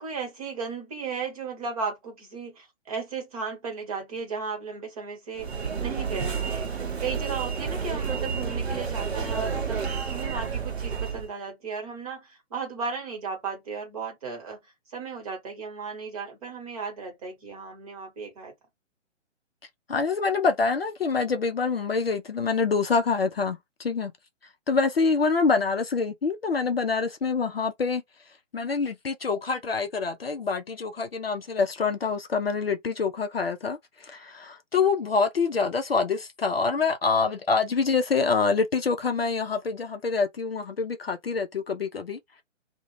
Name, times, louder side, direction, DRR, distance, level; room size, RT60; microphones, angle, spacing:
voice 1, 0.0-14.6 14.9-18.5, right 5 dB, 30° right, 1.1 m, -35 dB
sound 1, 5.4-11.3, right 6 dB, 55° right, 0.9 m, -30 dB
voice 2, 19.9-24.1 24.7-28.0 28.5-42.2, left 4 dB, 50° left, 0.4 m, -26 dB
2.3 x 2.1 x 3.0 m
figure-of-eight pair, 135°, 38 cm